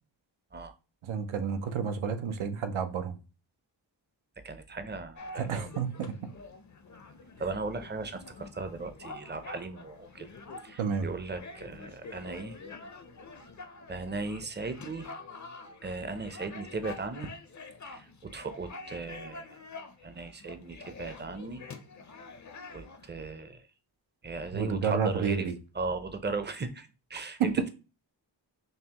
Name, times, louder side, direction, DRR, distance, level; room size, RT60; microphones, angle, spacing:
voice 1, 1.0-3.2 5.4-6.1 10.8-11.1 24.5-25.6 27.4-27.5, right 6 dB, 85° right, 8 dB, 0.6 m, -30 dB
voice 2, 4.4-5.7 7.4-10.3 10.6-12.6 13.9-15.1 15.8-17.3 17.9-19.6 20.0-21.6 22.7-23.6 24.2-25.5 25.7-27.7, right 3 dB, 25° right, 9 dB, 0.6 m, -37 dB
sound 1, 5.2-23.1, left 3 dB, 40° left, 0.6 m, -47 dB
5.4 x 2.0 x 2.9 m, 0.32 s
cardioid pair, 45°, 47 cm